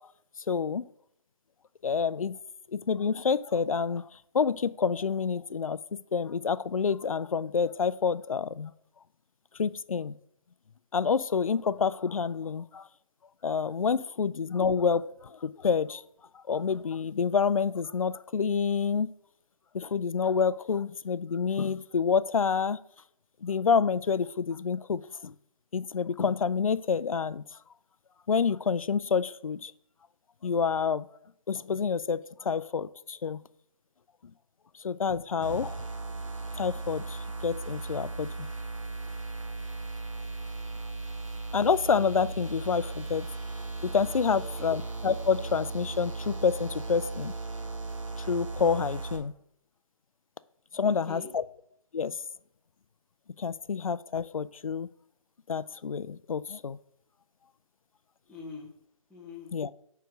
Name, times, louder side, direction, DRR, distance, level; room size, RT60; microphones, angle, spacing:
voice 1, 0.5-0.8 1.8-2.4 2.7-4.1 4.3-5.8 6.1-8.7 9.6-10.1 10.9-12.9 13.4-16.0 16.3-19.1 19.7-22.8 23.4-25.3 25.7-27.4 28.3-29.7 30.4-31.1 31.5-33.4 34.8-35.8 36.5-38.5 41.5-43.3 43.8-47.3 48.2-49.3 50.7-51.4 51.9-52.2 53.4-54.9 55.5-56.8 59.5-59.7, left 6 dB, 75° left, 16 dB, 0.4 m, -28 dB
sound 1, 35.4-49.2, right 3 dB, 65° right, 1.7 m, -37 dB
voice 2, 44.3-44.7 50.8-51.3 58.3-58.7 59.1-59.5, left 4 dB, ahead, -8 dB, 0.5 m, -45 dB
9.3 x 3.4 x 5.1 m, 0.72 s
figure-of-eight pair, 145°, 18 cm